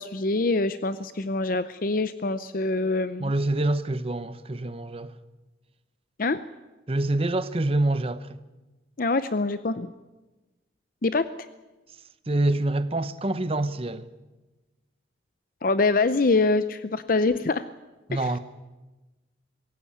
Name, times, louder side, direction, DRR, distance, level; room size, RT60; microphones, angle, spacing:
voice 1, 0.0-3.3 6.2-6.4 9.0-9.9 11.0-11.5 15.6-17.7 18.1-18.2, left 3 dB, 50° left, 0.6 m, -25 dB
voice 2, 3.2-5.1 6.9-8.4 12.3-14.1 18.1-18.4, right 2 dB, 30° right, 0.9 m, -26 dB
23.0 x 17.0 x 8.5 m
head